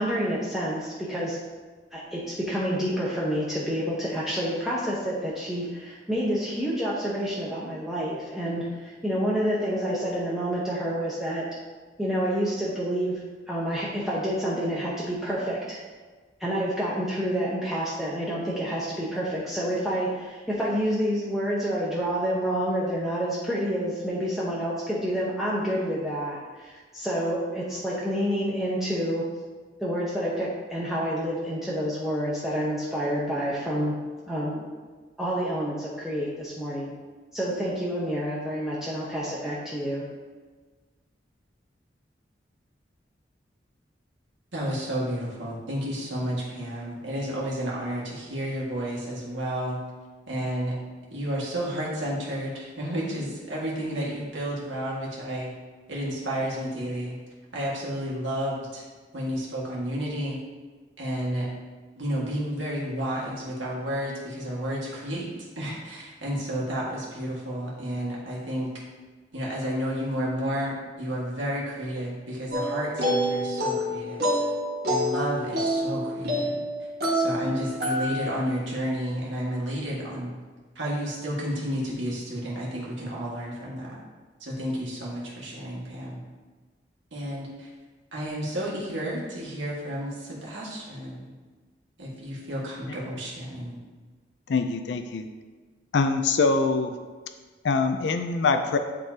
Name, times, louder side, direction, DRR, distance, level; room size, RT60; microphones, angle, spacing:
voice 1, 0.0-1.4 1.9-11.5 12.0-15.8 16.4-29.3 29.8-33.9 34.3-34.6 35.2-36.9 37.3-40.0, equal, ahead, -7 dB, 0.8 m, -28 dB
voice 2, 44.5-49.8 50.3-50.8 51.1-55.5 55.9-57.2 57.5-58.8 59.1-60.4 61.0-61.5 62.0-65.3 65.6-68.7 69.3-74.3 74.9-76.6 77.1-80.3 80.8-84.0 84.4-86.2 87.1-87.7 88.1-91.3 92.0-93.8, equal, 90° right, -5 dB, 1.9 m, -31 dB
sound 1, 72.5-78.4, equal, 55° right, 1.5 m, -27 dB
voice 3, 94.5-95.3 95.9-97.0 97.6-98.8, left 4 dB, 75° left, 8 dB, 0.4 m, -24 dB
10.5 x 3.8 x 2.8 m, 1.4 s
head